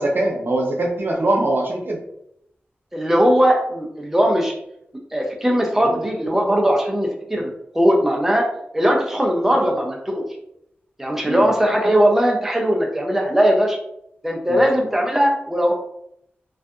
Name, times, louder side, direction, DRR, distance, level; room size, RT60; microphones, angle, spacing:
voice 1, 0.0-2.0 11.2-11.4 14.5-14.6, right 1 dB, 60° right, 0 dB, 0.6 m, -22 dB
voice 2, 2.9-4.5 5.1-8.5 8.7-10.3 11.0-13.8 14.2-15.7, equal, 10° right, 0 dB, 0.5 m, -19 dB
2.5 x 2.4 x 2.3 m, 0.76 s
wide cardioid pair, 70°, 4 cm